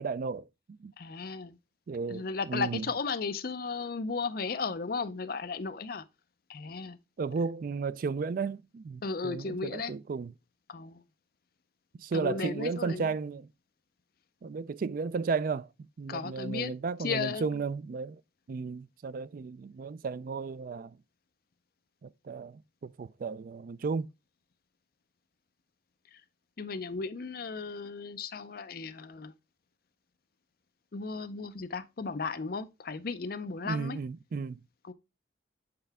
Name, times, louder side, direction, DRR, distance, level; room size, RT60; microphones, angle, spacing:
voice 1, 0.0-0.9 1.9-2.9 7.2-10.3 11.9-13.5 14.4-15.7 16.0-18.2 18.5-21.0 22.0-24.1 33.6-34.6, right 5 dB, 45° right, 0.3 m, -34 dB
voice 2, 1.0-1.6 2.1-6.0 6.5-7.0 9.0-9.9 10.7-11.0 12.1-13.1 16.1-16.7 17.0-17.6 26.6-29.3 30.9-34.0 34.9-35.0, left 4 dB, 50° left, 0.6 m, -35 dB
7.7 x 4.5 x 3.4 m
head